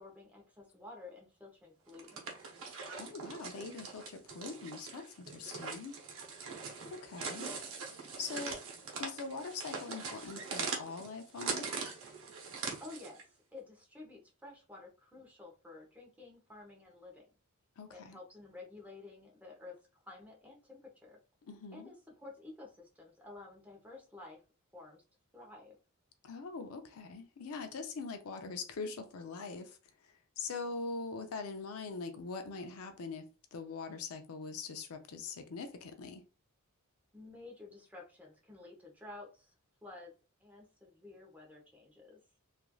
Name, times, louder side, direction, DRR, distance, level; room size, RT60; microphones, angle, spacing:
voice 1, 0.0-2.2 12.8-17.3 17.9-21.2 21.7-24.4 24.7-25.0 25.3-25.7 37.1-39.5 39.8-40.1 40.4-42.2, left 2 dB, 5° right, 0.8 m, -52 dB
sound 1, 1.9-13.2, right 4 dB, 65° right, 0.7 m, -42 dB
voice 2, 3.0-6.0 6.8-7.5 7.9-8.6 9.0-11.7 17.8-18.2 21.5-21.9 26.2-33.3 33.5-36.2, left 4 dB, 70° left, 0.5 m, -43 dB
3.0 x 2.5 x 2.3 m
head